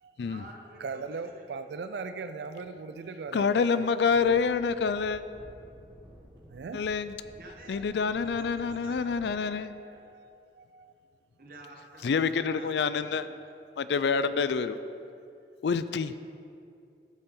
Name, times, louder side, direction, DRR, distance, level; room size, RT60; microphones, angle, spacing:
voice 1, 0.2-1.6 7.4-9.6 9.9-10.0 11.4-13.4, right 1 dB, 50° right, 1 dB, 1.2 m, -50 dB
voice 2, 0.8-3.8 4.2-4.4 6.5-6.8 9.5-10.9 12.6-12.7 13.1-13.2 13.7-13.8, right 4 dB, 70° right, 10 dB, 0.4 m, -40 dB
voice 3, 3.3-5.2 6.7-7.2 7.7-9.7 12.0-13.3 13.8-14.8 15.6-16.1, left 5 dB, 75° left, 13 dB, 0.4 m, -27 dB
sound 1, 4.1-9.3, equal, 20° right, 1.7 m, -52 dB
13.0 x 6.8 x 3.8 m, 2.5 s
head